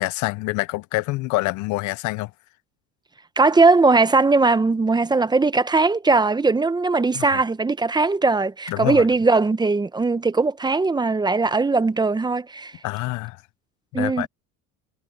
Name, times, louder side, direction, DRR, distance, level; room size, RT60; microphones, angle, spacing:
voice 1, 0.0-2.3 7.1-7.4 8.7-9.1 12.8-13.4 13.9-14.3, left 21 dB, 60° left, 0.6 m, -26 dB
voice 2, 3.4-12.7 13.9-14.3, right 3 dB, 15° right, 0.8 m, -19 dB
cardioid pair, 120°, 33 cm